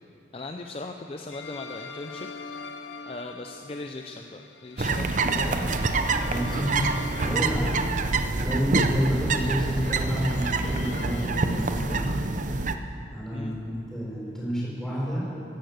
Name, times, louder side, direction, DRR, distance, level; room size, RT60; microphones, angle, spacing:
voice 1, 0.3-2.3 3.0-5.8 13.3-13.6, left 2 dB, 30° left, 4 dB, 0.6 m, -38 dB
sound 1, 1.3-12.3, left 4 dB, 80° left, 0.8 m, -43 dB
sound 2, 4.8-12.8, right 3 dB, 45° right, 0.7 m, -26 dB
voice 2, 6.2-8.1 8.4-12.0 13.1-13.5 13.9-15.3, equal, 5° left, -6 dB, 4.9 m, -30 dB
14.5 x 11.5 x 8.0 m, 2.7 s
head